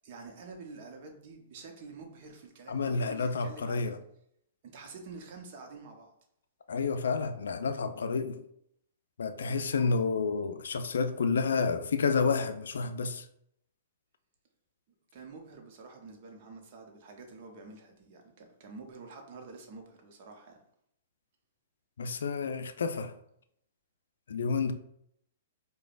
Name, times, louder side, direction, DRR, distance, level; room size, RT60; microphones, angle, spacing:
voice 1, 0.0-4.0 4.6-6.1 15.1-20.6, right 4 dB, 50° right, 0.9 m, -48 dB
voice 2, 2.7-4.0 6.7-8.4 9.2-13.3 22.0-23.1 24.3-24.7, left 4 dB, 70° left, 0.4 m, -30 dB
4.8 x 2.2 x 2.4 m
hypercardioid pair, 115°, 0 cm